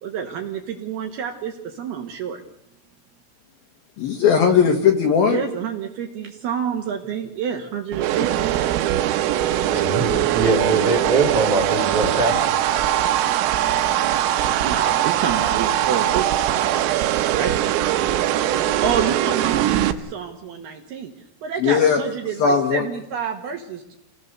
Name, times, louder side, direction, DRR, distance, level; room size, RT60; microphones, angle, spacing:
voice 1, 0.0-2.4 5.3-8.5 14.5-16.9 17.3-17.5 18.8-21.1 21.4-23.9, right 7 dB, 65° right, 3 dB, 2.9 m, -28 dB
voice 2, 4.0-5.4 21.6-22.0 22.4-22.9, left 6 dB, 65° left, 3 dB, 2.7 m, -18 dB
sound 1, 7.9-19.9, right 12 dB, 85° right, 3.6 m, -21 dB
voice 3, 9.7-12.5, right 2 dB, 35° right, 3 dB, 2.6 m, -22 dB
28.0 x 18.0 x 6.8 m, 0.83 s
omnidirectional pair, 5.8 m